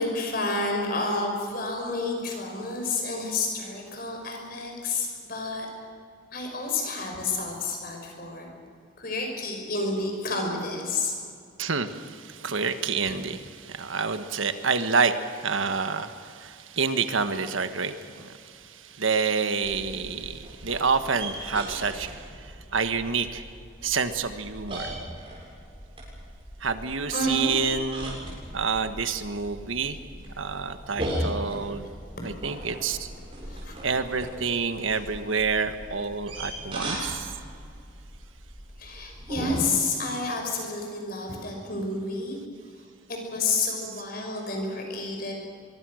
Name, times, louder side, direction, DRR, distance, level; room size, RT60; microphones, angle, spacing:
voice 1, 0.0-5.7 6.3-8.5 9.0-11.1 27.1-27.5 33.5-33.7 38.8-42.4 43.1-45.3, left 3 dB, 50° left, 2 dB, 5.7 m, -30 dB
voice 2, 11.6-22.1 22.7-23.4 23.8-24.9 26.6-28.2 28.5-30.0 30.4-31.9 32.2-33.1 33.8-37.3 43.8-44.0, right 5 dB, 85° right, 9 dB, 1.4 m, -28 dB
sound 1, 19.6-39.6, right 1 dB, 25° right, 7.2 m, -38 dB
24.0 x 23.0 x 6.5 m, 2.3 s
head